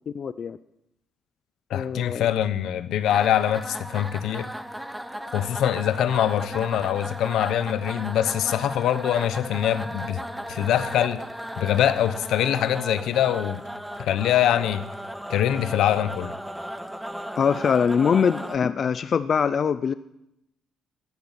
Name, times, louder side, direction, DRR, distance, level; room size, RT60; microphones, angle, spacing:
voice 1, 0.1-0.6 1.7-2.3 17.4-19.9, left 6 dB, 50° left, 0.5 m, -23 dB
voice 2, 1.7-4.5 5.3-10.2 10.5-11.2 11.6-13.6 14.0-14.8 15.3-16.3, left 11 dB, 80° left, 0.9 m, -23 dB
sound 1, 3.0-18.6, equal, 5° right, 1.0 m, -36 dB
14.0 x 10.5 x 7.3 m
cardioid pair, 90°, 0 cm